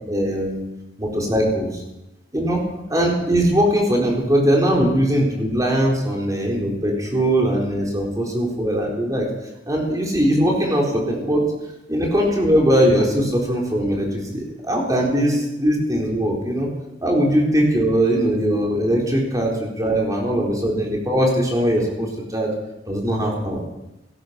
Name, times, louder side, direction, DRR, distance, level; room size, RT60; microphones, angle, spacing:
voice 1, 0.1-0.6 1.0-1.8 2.3-2.6 2.9-9.3 9.7-11.4 11.9-16.7 17.0-22.5 22.9-23.6, equal, 20° right, -2 dB, 4.2 m, -20 dB
18.0 x 13.5 x 6.0 m, 0.98 s
head